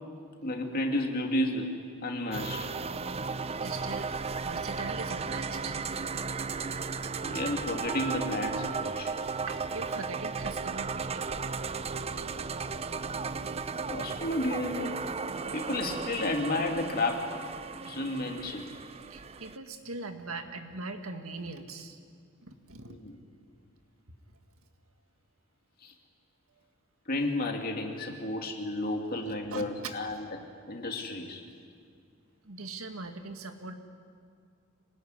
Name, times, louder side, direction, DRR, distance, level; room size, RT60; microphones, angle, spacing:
voice 1, 0.4-2.7 7.2-9.1 13.9-15.0 15.5-17.3 17.8-18.7 22.9-23.2 25.8-25.9 27.1-30.4 30.7-31.4, left 1 dB, 45° left, 3 dB, 2.5 m, -32 dB
sound 1, 2.3-19.6, right 5 dB, 30° right, 0.5 m, -35 dB
voice 2, 3.5-4.1 4.4-5.8 6.7-6.8 9.4-11.5 12.6-12.9 13.2-13.4 19.1-22.0 22.4-22.9 29.2-30.3 32.4-33.7, right 3 dB, 85° right, 6 dB, 2.0 m, -41 dB
25.5 x 19.0 x 9.7 m, 2.2 s
head